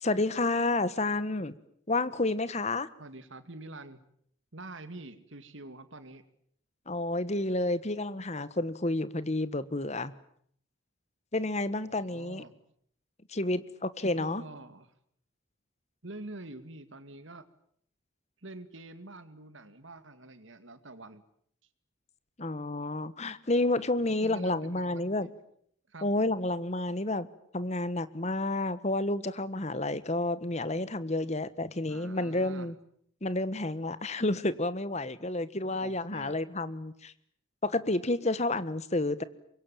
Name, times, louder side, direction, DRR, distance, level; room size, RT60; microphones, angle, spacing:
voice 1, 0.0-1.5 1.9-2.9 6.9-10.1 11.3-12.4 13.3-14.4 22.4-25.3 26.0-27.3 27.5-32.7 33.2-37.1 37.6-39.2, left 2 dB, 35° left, 15 dB, 1.3 m, -30 dB
voice 2, 3.0-4.0 4.5-6.2 11.7-12.5 14.2-14.9 16.0-17.4 18.4-21.2 24.0-25.3 25.9-26.1 31.9-32.7 35.8-36.4, right 2 dB, 75° right, 12 dB, 2.3 m, -46 dB
25.0 x 22.5 x 9.1 m, 0.67 s
head